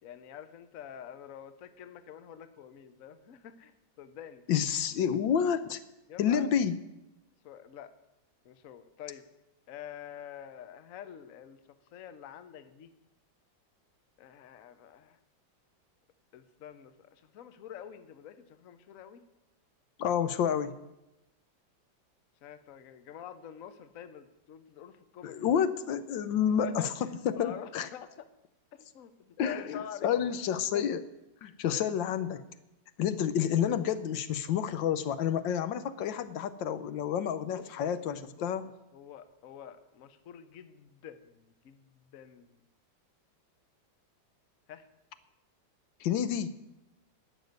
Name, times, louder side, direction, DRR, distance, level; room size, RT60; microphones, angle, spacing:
voice 1, 0.0-4.4 6.1-6.5 7.4-7.9 8.4-9.2 9.7-11.6 11.9-12.9 14.2-15.2 16.3-19.2 22.4-25.4 25.9-26.0 26.6-28.3 28.7-30.4 30.7-30.8 31.7-31.9 37.5-37.9 38.9-42.6 44.7-44.9, left 9 dB, 55° left, 11 dB, 1.1 m, -47 dB
voice 2, 4.5-5.8 6.2-6.8 20.0-20.7 25.2-26.9 27.2-27.9 29.4-31.0 31.4-32.4 33.0-38.7 46.0-46.5, left 8 dB, 75° left, 12 dB, 1.4 m, -29 dB
12.0 x 7.0 x 9.3 m, 0.94 s
omnidirectional pair, 2.1 m